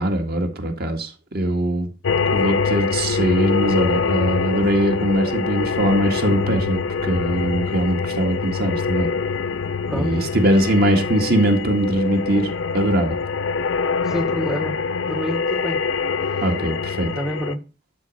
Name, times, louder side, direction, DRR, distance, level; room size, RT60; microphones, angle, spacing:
voice 1, 0.0-1.9 2.3-9.1 10.0-12.5 12.7-13.2 16.4-17.1, right 1 dB, 50° right, 1.8 m, -21 dB
sound 1, 2.0-17.5, left 5 dB, 75° left, 0.6 m, -24 dB
voice 2, 9.9-10.3 14.1-15.8 16.3-16.5 17.1-17.7, equal, ahead, 0.8 m, -29 dB
11.5 x 4.1 x 6.4 m
head